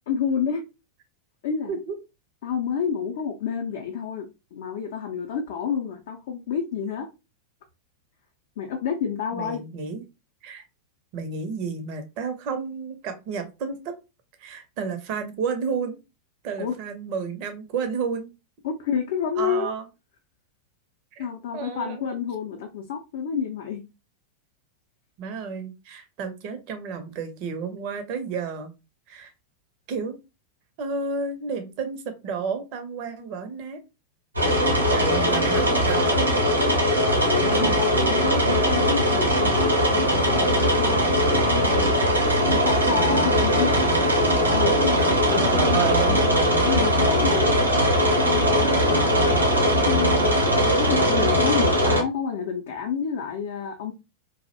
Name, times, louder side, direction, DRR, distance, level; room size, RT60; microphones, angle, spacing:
voice 1, 0.1-0.7 1.4-1.7 2.4-7.1 8.6-9.6 16.6-16.7 18.6-19.7 21.2-23.8 37.2-41.9 42.4-43.8 44.5-46.3 46.6-49.2 49.8-53.9, left 7 dB, 55° left, 0.4 m, -29 dB
voice 2, 9.3-10.0 10.4-10.6 11.1-13.9 14.4-16.0 16.4-18.3 19.4-19.9 21.1-21.3 21.5-22.2 25.2-28.7 29.1-29.3 29.9-30.2 30.8-33.8 34.5-36.3 37.5-37.8 45.3-46.2, right 5 dB, 45° right, 0.5 m, -31 dB
sound 1, 34.4-52.0, equal, 85° right, 0.8 m, -20 dB
2.4 x 2.0 x 2.6 m
figure-of-eight pair, 90°, 0 cm